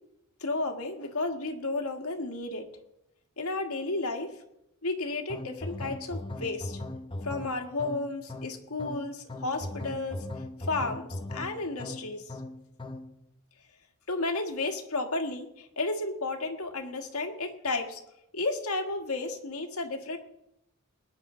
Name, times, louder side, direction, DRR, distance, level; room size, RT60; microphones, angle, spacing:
voice 1, 0.4-2.7 3.4-4.4 4.8-6.8 7.2-10.2 10.6-12.4 14.1-18.0 18.3-20.2, left 2 dB, 85° left, 2 dB, 1.7 m, -32 dB
sound 1, 5.3-13.2, left 1 dB, 25° left, 0.8 m, -39 dB
20.5 x 9.7 x 3.8 m, 0.83 s
head